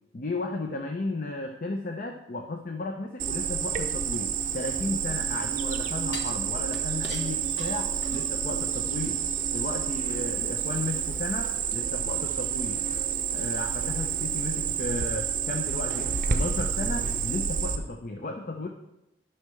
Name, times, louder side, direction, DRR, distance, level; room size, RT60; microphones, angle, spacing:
voice 1, 0.1-9.2 9.5-12.8 13.3-18.7, left 2 dB, 45° left, 4 dB, 0.5 m, -34 dB
Cricket, 3.2-17.8, right 7 dB, 40° right, 0.6 m, -29 dB
sound 1, 4.1-5.3 6.1-8.5 8.9-9.0, left 3 dB, 65° left, 1.1 m, -43 dB
12.0 x 5.7 x 3.2 m, 0.92 s
head